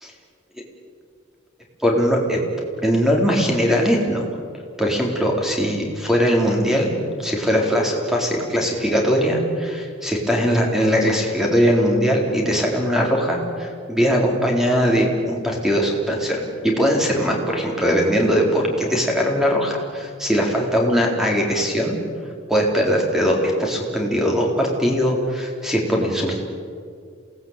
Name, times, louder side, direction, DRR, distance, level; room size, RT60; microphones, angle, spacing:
voice 1, 1.8-2.4 2.8-4.3 4.8-6.9 7.2-22.0 22.5-26.4, equal, ahead, 0 dB, 4.2 m, -20 dB
28.0 x 18.5 x 9.2 m, 2.1 s
head